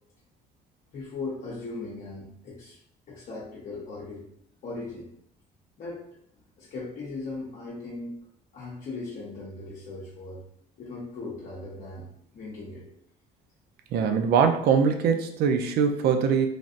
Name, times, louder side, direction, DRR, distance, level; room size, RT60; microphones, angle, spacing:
voice 1, 0.9-2.8 3.1-4.3 4.6-5.1 5.8-6.0 6.4-8.2 8.5-10.4 10.8-12.1 12.3-12.9, left 3 dB, 50° left, -5 dB, 0.7 m, -38 dB
voice 2, 13.9-16.5, right 6 dB, 70° right, 7 dB, 0.5 m, -22 dB
3.3 x 2.5 x 2.4 m, 0.69 s
cardioid pair, 110°, 17 cm